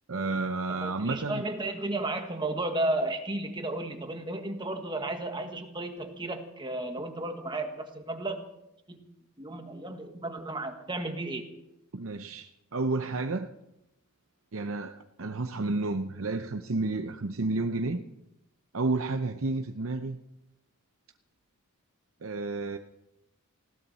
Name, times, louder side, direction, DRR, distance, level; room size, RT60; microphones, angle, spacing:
voice 1, 0.1-1.4 11.9-13.5 14.5-18.1 18.7-20.2 22.2-22.8, right 3 dB, 60° right, 0.7 m, -31 dB
voice 2, 0.7-8.5 8.9-9.1 9.4-11.5, right 2 dB, 20° right, 1.5 m, -33 dB
19.0 x 17.0 x 4.2 m
head